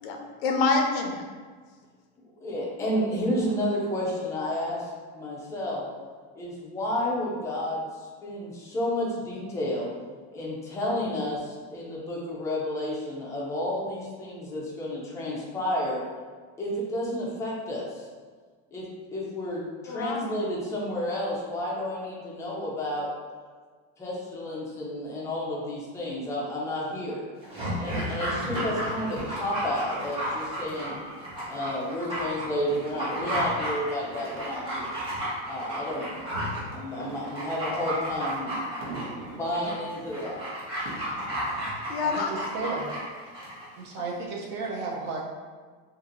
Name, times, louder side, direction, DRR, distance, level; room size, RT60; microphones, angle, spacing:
voice 1, 0.0-1.3 19.9-20.2 41.9-42.3, left 4 dB, 90° left, 3 dB, 0.6 m, -26 dB
voice 2, 2.4-5.8 6.3-7.9 8.2-9.9 10.3-16.0 16.6-18.0 18.7-18.8 19.1-23.1 24.0-27.2 27.8-31.0 31.5-35.0 35.5-36.1 36.7-38.9 39.3-40.4, left 1 dB, 10° left, -5 dB, 0.5 m, -31 dB
Dog, 27.4-43.7 44.0-44.1, equal, 20° right, 1.1 m, -33 dB
sound 1, 27.8-41.3, right 2 dB, 75° right, 1.0 m, -45 dB
voice 3, 42.0-42.9 43.8-45.2, right 4 dB, 40° right, -1 dB, 0.6 m, -33 dB
2.8 x 2.5 x 3.8 m, 1.5 s
cardioid pair, 175°, 29 cm